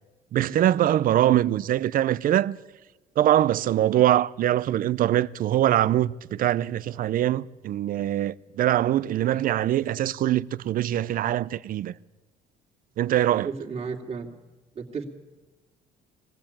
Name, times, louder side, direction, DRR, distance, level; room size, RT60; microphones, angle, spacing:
voice 1, 0.3-2.6 3.2-11.9 13.0-13.5, right 12 dB, 55° right, 0.6 m, -23 dB
voice 2, 13.4-14.3 14.8-15.0, right 5 dB, 35° right, 2.5 m, -33 dB
21.5 x 16.0 x 8.8 m
cardioid pair, 110°, 17 cm